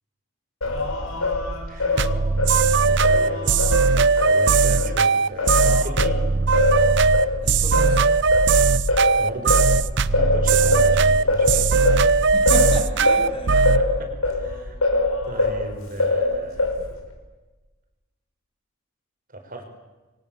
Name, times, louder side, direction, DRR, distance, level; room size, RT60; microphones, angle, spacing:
Singing, 0.6-5.0 5.4-15.7 16.0-17.0, left 2 dB, 90° left, 6.0 m, -24 dB
voice 1, 1.7-6.2 9.2-9.6 10.0-12.3 13.7-14.8 15.2-16.6 19.3-19.6, right 1 dB, 40° right, 5 dB, 5.2 m, -36 dB
sound 1, 2.0-13.8, right 4 dB, 60° right, 0.8 m, -18 dB
voice 2, 7.4-8.1 12.3-13.7, left 1 dB, 25° left, 5 dB, 2.8 m, -33 dB
27.0 x 24.0 x 8.7 m, 1.2 s
head